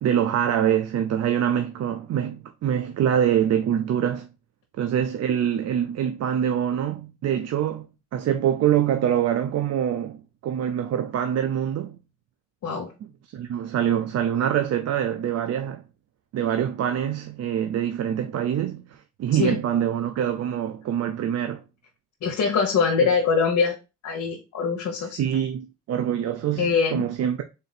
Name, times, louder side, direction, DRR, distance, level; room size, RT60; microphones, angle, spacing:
voice 1, 0.0-4.3 4.8-12.0 13.3-15.8 16.3-21.6 23.0-23.1 25.0-27.4, right 9 dB, 55° right, 0.5 m, -25 dB
voice 2, 22.2-23.8 24.0-25.2 26.6-27.0, left 5 dB, 65° left, 0.9 m, -23 dB
3.9 x 2.6 x 4.0 m
cardioid pair, 90°, 30 cm